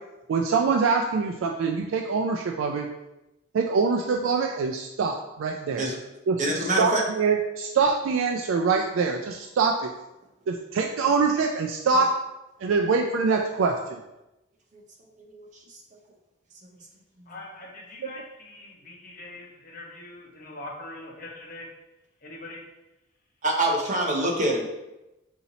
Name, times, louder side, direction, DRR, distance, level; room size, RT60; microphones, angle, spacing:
voice 1, 0.3-2.9 3.5-5.9 6.3-6.4 6.8-9.9 10.5-12.1 12.6-14.0 18.0-18.1, right 4 dB, 90° right, 2 dB, 0.3 m, -24 dB
voice 2, 6.4-7.0 15.3-15.5 17.2-17.3 23.4-24.7, right 1 dB, 40° right, 0 dB, 0.7 m, -25 dB
voice 3, 17.3-21.7 22.2-22.6, left 2 dB, 45° left, -3 dB, 0.9 m, -42 dB
4.2 x 2.8 x 4.0 m, 0.96 s
head